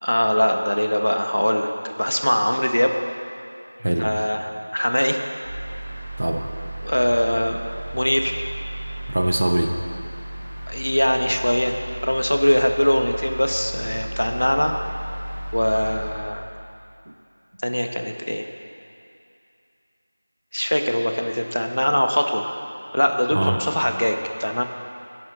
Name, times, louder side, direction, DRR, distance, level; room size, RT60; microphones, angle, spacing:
voice 1, 0.0-2.9 4.0-5.2 6.8-7.6 7.9-8.5 10.7-11.8 12.0-14.7 15.5-16.5 17.6-18.5 20.5-22.4 22.9-24.6, equal, 75° left, 4 dB, 1.3 m, -22 dB
sound 1, 5.4-16.1, right 1 dB, 5° right, 2.5 m, -34 dB
voice 2, 6.2-6.5 9.1-9.7 23.3-23.6, right 1 dB, 35° right, 4 dB, 0.8 m, -22 dB
19.5 x 11.0 x 3.9 m, 2.6 s
figure-of-eight pair, 180°, 0 cm